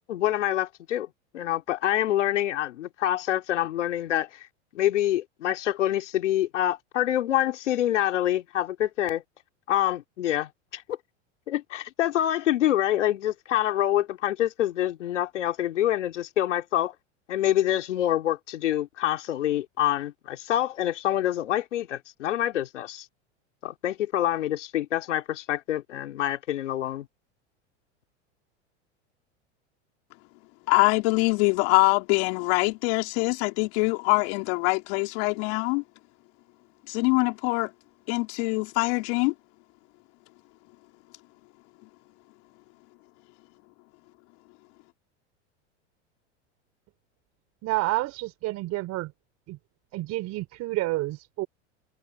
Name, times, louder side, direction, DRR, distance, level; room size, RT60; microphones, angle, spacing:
voice 1, 0.1-1.1 1.3-4.3 4.7-9.2 9.7-11.0 11.5-16.9 17.3-23.0 23.6-27.1, left 12 dB, 80° left, 3.0 m, -26 dB
voice 2, 30.7-35.8 36.9-37.7 38.1-39.3, left 29 dB, 60° left, 3.9 m, -24 dB
voice 3, 47.6-49.1 49.5-49.6 49.9-51.5, right 19 dB, 45° right, 3.7 m, -29 dB
hypercardioid pair, 105°, 36 cm